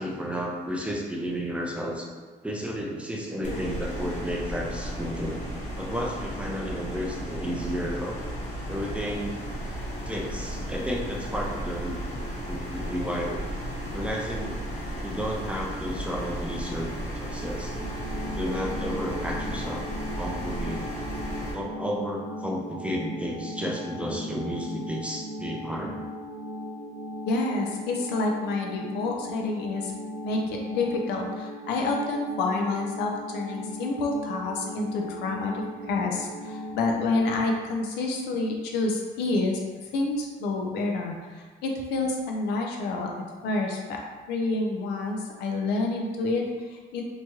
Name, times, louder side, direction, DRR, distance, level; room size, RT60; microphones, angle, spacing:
voice 1, 0.0-2.1 2.4-5.4 5.8-8.2 8.7-9.4 10.1-12.0 12.5-13.5 13.9-14.6 15.0-17.7 18.2-19.8 20.2-20.9 21.5-26.0, equal, 5° right, -2 dB, 0.4 m, -32 dB
sound 1, 3.4-21.5, equal, 45° left, 0.9 m, -34 dB
sound 2, 17.7-36.9, equal, 45° right, 1.0 m, -38 dB
voice 2, 27.3-29.9 30.2-39.6 39.9-43.1 43.4-44.0 44.3-47.0, left 3 dB, 80° left, 1 dB, 0.5 m, -28 dB
2.9 x 2.3 x 2.9 m, 1.4 s
cardioid pair, 110°, 17 cm